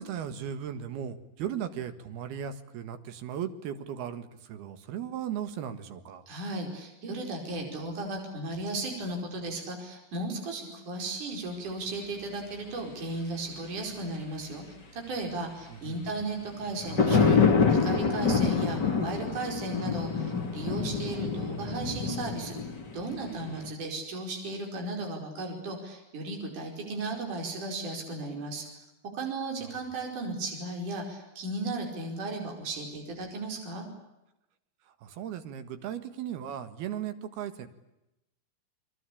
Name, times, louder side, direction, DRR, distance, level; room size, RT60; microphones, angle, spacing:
voice 1, 0.0-6.2 15.7-16.0 29.6-29.7 35.0-37.7, right 9 dB, 85° right, 9 dB, 3.8 m, -37 dB
voice 2, 6.3-14.6 14.9-17.4 17.7-22.6 22.9-28.7 29.1-33.9, right 2 dB, 55° right, 2 dB, 6.4 m, -35 dB
sound 1, 16.6-23.7, left 5 dB, 30° left, 3.1 m, -26 dB
29.0 x 23.0 x 8.6 m, 0.92 s
omnidirectional pair, 4.4 m